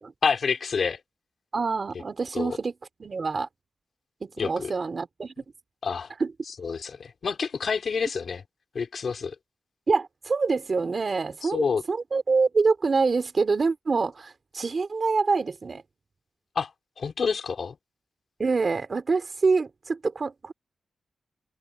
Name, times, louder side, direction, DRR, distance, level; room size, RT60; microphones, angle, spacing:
voice 1, 0.2-1.0 2.3-2.6 4.4-4.7 5.8-6.1 6.6-8.4 8.7-9.4 11.4-11.8 16.6-16.7 17.0-17.8, left 5 dB, 50° left, 3.5 m, -28 dB
voice 2, 1.5-2.7 3.0-3.5 4.2-5.3 6.2-6.3 9.9-15.8 18.4-20.5, right 4 dB, 35° right, 3.0 m, -26 dB
open air
wide cardioid pair, 155°, 0 cm